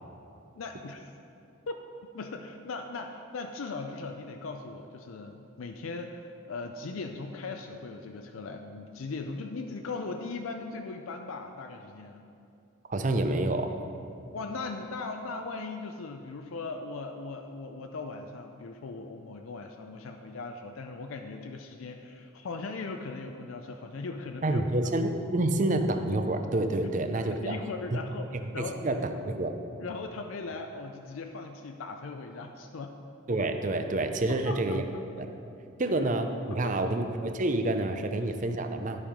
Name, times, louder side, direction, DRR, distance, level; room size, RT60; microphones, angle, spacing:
voice 1, 0.6-1.1 1.7-1.8 2.1-12.2 14.3-24.9 26.8-26.9 27.3-28.3 28.5-28.8 29.8-32.9 34.3-34.8 35.8-35.9 36.5-36.9, left 3 dB, 80° left, 5 dB, 0.5 m, -39 dB
voice 2, 12.9-13.8 24.4-27.6 27.9-28.0 28.5-29.6 33.3-34.8 35.2-35.3 35.8-39.0, right 2 dB, 35° right, 7 dB, 0.5 m, -28 dB
11.5 x 5.5 x 5.0 m, 2.6 s
head